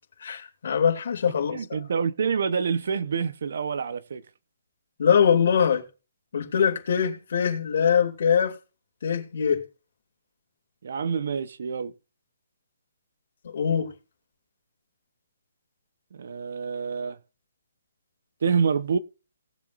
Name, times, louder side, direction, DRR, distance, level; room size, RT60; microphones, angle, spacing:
voice 1, 0.2-1.8 5.0-5.8 6.3-8.5 9.0-9.6 13.4-13.9, left 7 dB, 50° left, 2.8 m, -23 dB
voice 2, 1.5-4.2 10.8-11.9 16.1-17.2 18.4-19.0, right 6 dB, 55° right, 0.9 m, -27 dB
19.0 x 7.3 x 2.6 m
hypercardioid pair, 170°, 0 cm